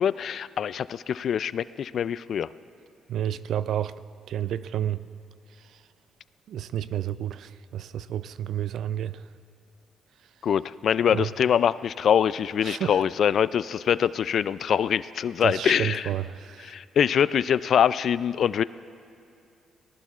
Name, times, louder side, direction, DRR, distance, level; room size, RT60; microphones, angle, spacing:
voice 1, 0.0-2.5 10.4-16.1 16.6-18.6, left 8 dB, 60° left, 17 dB, 0.3 m, -24 dB
voice 2, 3.1-3.9 4.3-5.0 5.7-5.8 6.5-9.2 11.1-11.3 12.6-13.0 15.4-16.7, right 10 dB, 75° right, 15 dB, 0.4 m, -30 dB
24.5 x 19.0 x 2.4 m, 2.5 s
cardioid pair, 90°, 0 cm